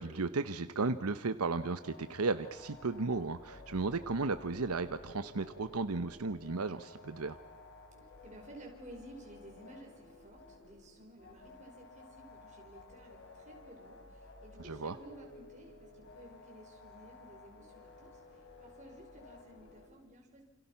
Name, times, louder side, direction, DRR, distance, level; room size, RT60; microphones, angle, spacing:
voice 1, 0.0-7.4 14.6-14.9, right 3 dB, 80° right, 11 dB, 0.9 m, -34 dB
sound 1, 1.6-19.9, left 2 dB, 55° left, 4.8 m, -55 dB
voice 2, 8.2-20.4, right 1 dB, 35° right, 0 dB, 5.2 m, -54 dB
29.0 x 28.0 x 5.8 m, 1.2 s
head